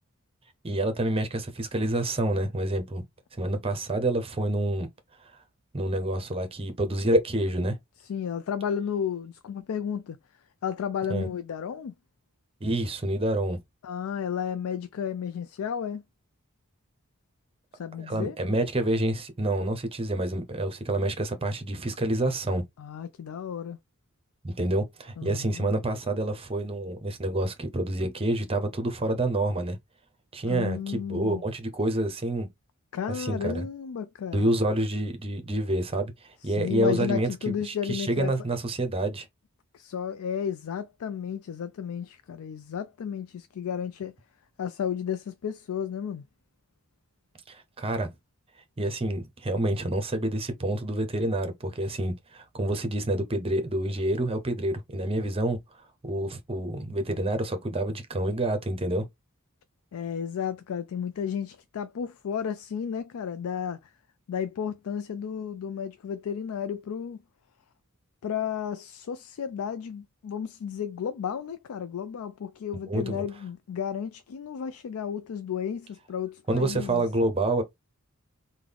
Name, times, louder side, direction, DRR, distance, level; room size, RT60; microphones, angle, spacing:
voice 1, 0.6-3.0 3.3-4.9 5.7-7.8 11.1-11.3 12.6-13.6 18.0-22.6 24.4-29.8 30.3-32.5 33.1-33.6 34.3-39.3 47.5-48.1 48.8-55.6 56.0-59.1 72.9-73.2 76.5-77.6, right 1 dB, 25° right, 0.7 m, -28 dB
voice 2, 8.1-10.2 10.6-11.9 13.8-16.0 17.8-18.4 22.8-23.8 25.2-25.7 30.5-31.4 32.9-34.5 36.6-38.3 39.7-44.1 44.6-46.2 59.9-63.8 64.3-67.2 68.2-77.0, left 8 dB, 70° left, 0.4 m, -33 dB
3.7 x 2.2 x 3.4 m
head